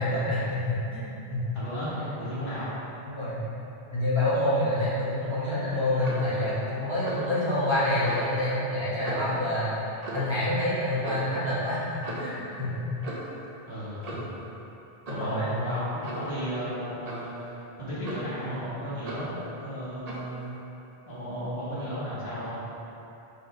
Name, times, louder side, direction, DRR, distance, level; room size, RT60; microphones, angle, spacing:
voice 1, 0.0-1.4 3.0-3.5 3.9-12.8 15.1-15.7, left 1 dB, 30° right, -12 dB, 1.0 m, -27 dB
voice 2, 1.5-2.7 13.7-14.3 15.1-20.5 21.1-22.6, equal, 60° left, -11 dB, 1.5 m, -34 dB
Clock, 6.0-6.3 7.0-7.3 8.0-8.3 9.0-9.4 10.0-10.3 11.0-11.3 12.0-12.4 13.0-13.4 14.0-14.4 15.1-15.3 16.0-16.3 17.1-17.3 18.0-18.4 19.1-19.3 20.1-20.3, right 2 dB, 45° right, 0.7 m, -38 dB
4.1 x 2.7 x 4.8 m, 3.0 s
omnidirectional pair, 1.1 m